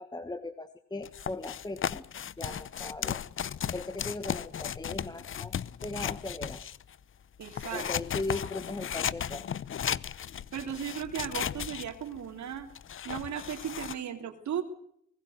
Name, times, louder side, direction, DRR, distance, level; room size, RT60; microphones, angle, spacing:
voice 1, 0.0-2.0 2.4-3.2 3.7-5.5 5.8-6.6 7.7-9.5, left 2 dB, 15° left, 11 dB, 1.3 m, -38 dB
sound 1, 1.0-7.0 7.4-13.9, left 9 dB, 45° left, 0.8 m, -35 dB
voice 2, 7.4-7.9 10.5-12.7 13.0-14.6, right 9 dB, 70° right, 6 dB, 3.2 m, -36 dB
24.5 x 19.5 x 6.6 m, 0.70 s
cardioid pair, 90°, 30 cm